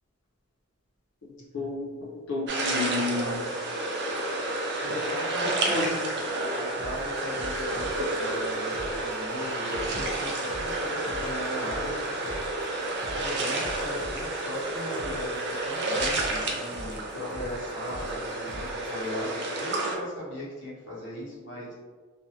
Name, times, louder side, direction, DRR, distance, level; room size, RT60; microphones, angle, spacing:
voice 1, 1.2-3.4 4.9-5.1 5.4-5.9, left 2 dB, 90° left, -7 dB, 0.7 m, -31 dB
sound 1, 2.5-20.0, right 2 dB, 55° right, 0.4 m, -30 dB
voice 2, 4.8-5.5 6.6-12.0 13.1-21.7, left 1 dB, 55° left, -7 dB, 0.9 m, -38 dB
sound 2, 6.8-19.1, equal, 5° right, 0.8 m, -43 dB
2.5 x 2.0 x 2.8 m, 1.5 s
head